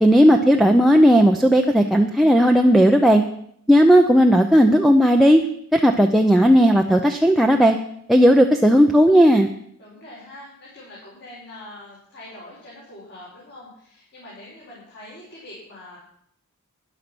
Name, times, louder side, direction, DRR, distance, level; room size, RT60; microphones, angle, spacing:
voice 1, 0.0-3.2 3.7-5.4 5.7-7.8 8.1-9.5, equal, ahead, 2 dB, 0.6 m, -15 dB
voice 2, 9.8-16.0, left 1 dB, 50° left, -7 dB, 5.1 m, -43 dB
13.0 x 10.0 x 6.1 m, 0.68 s
head